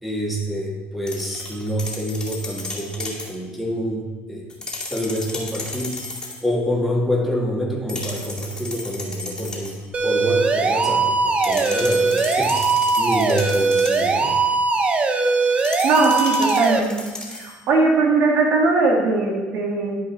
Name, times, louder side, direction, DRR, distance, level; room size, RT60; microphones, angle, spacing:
voice 1, 0.0-4.5 4.9-5.9 6.4-12.6 13.0-14.3, equal, ahead, -2 dB, 2.0 m, -27 dB
sound 1, 1.1-3.4 4.5-6.4 7.9-9.8 11.4-14.2 15.6-17.6, left 3 dB, 20° left, 2.3 m, -34 dB
sound 2, 9.9-16.8, right 4 dB, 30° right, 0.8 m, -20 dB
voice 2, 15.5-16.9 17.3-19.9, right 3 dB, 65° right, -1 dB, 2.1 m, -20 dB
11.5 x 5.0 x 4.3 m, 1.3 s
cardioid pair, 110°, 4 cm